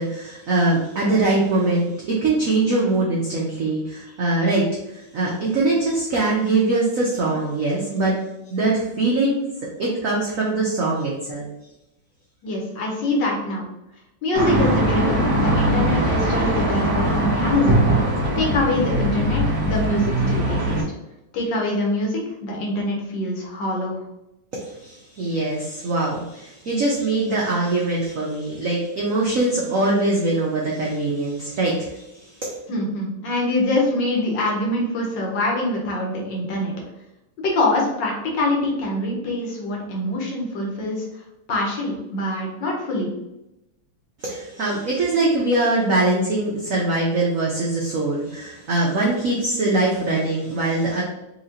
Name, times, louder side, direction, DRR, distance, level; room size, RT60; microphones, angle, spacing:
voice 1, 0.0-4.7 4.9-8.2 8.5-9.4 9.8-11.5 24.5-32.6 44.2-51.0, right 2 dB, 85° right, -3 dB, 0.7 m, -22 dB
voice 2, 12.4-13.6 14.2-20.9 21.3-24.0 32.7-36.7 37.4-43.2, left 1 dB, 60° left, -1 dB, 1.5 m, -24 dB
sound 1, 14.3-20.8, right 1 dB, 50° right, 1.3 m, -21 dB
4.4 x 2.9 x 2.8 m, 0.91 s
omnidirectional pair, 2.4 m